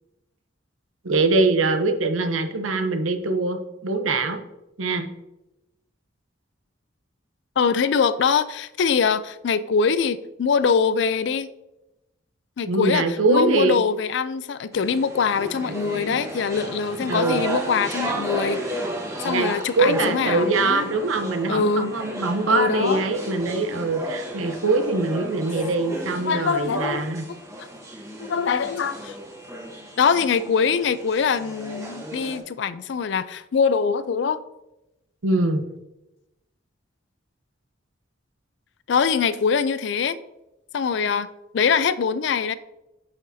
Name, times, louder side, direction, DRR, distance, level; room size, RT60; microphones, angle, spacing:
voice 1, 1.0-4.4 4.8-5.1 12.7-13.8 17.1-17.4 19.2-27.2 35.2-35.6, right 3 dB, 90° right, 0.8 m, -23 dB
voice 2, 7.6-11.5 12.6-18.6 19.2-20.9 21.5-21.9 22.5-23.0 26.2-27.0 28.2-29.2 30.0-34.4 38.9-40.2 40.7-41.3 41.5-42.5, left 6 dB, 60° left, 0.3 m, -23 dB
sound 1, 14.7-32.4, right 1 dB, 15° right, 1.1 m, -33 dB
8.7 x 6.2 x 2.7 m
head